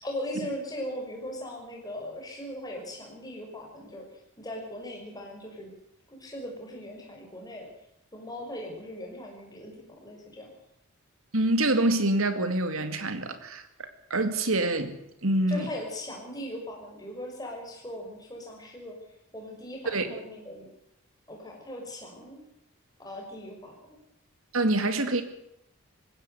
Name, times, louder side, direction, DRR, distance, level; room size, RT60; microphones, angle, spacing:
voice 1, 0.0-4.1 4.4-5.7 6.1-7.7 8.1-10.5 15.5-18.9 19.3-20.7 21.3-22.4 23.0-23.7, left 1 dB, 15° left, 0 dB, 5.9 m, -39 dB
voice 2, 11.3-14.9 15.2-15.7 19.9-20.2 24.5-25.2, right 2 dB, 75° right, 9 dB, 2.3 m, -26 dB
20.5 x 16.0 x 8.1 m, 0.80 s
head